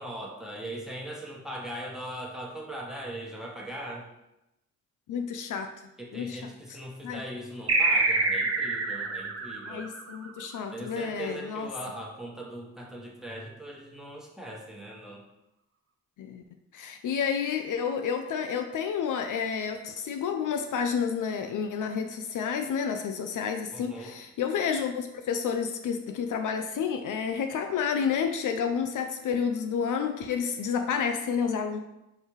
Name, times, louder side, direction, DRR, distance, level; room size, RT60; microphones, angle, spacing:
voice 1, 0.0-4.1 6.0-9.9 10.7-15.2 23.7-24.1, right 1 dB, ahead, -2 dB, 1.2 m, -40 dB
voice 2, 5.1-5.7 6.1-6.5 7.0-7.2 9.7-11.7 16.2-16.4 16.7-31.8, left 7 dB, 65° left, 6 dB, 0.4 m, -30 dB
sound 1, 7.7-10.7, right 3 dB, 40° right, 0.8 m, -26 dB
4.5 x 3.3 x 3.1 m, 0.89 s
supercardioid pair, 45°, 34 cm